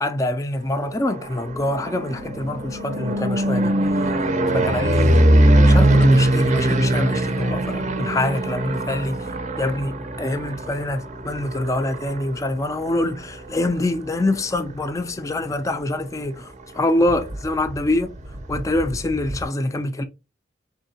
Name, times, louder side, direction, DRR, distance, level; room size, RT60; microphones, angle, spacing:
voice 1, 0.0-3.7 4.5-9.2 9.6-18.1 18.5-20.0, left 1 dB, 15° left, 0.4 m, -25 dB
sound 1, 0.8-14.8 15.3-15.7 16.0-16.1 16.4-16.5 16.6-19.4, right 1 dB, 40° right, 0.5 m, -22 dB
3.7 x 3.5 x 2.7 m
head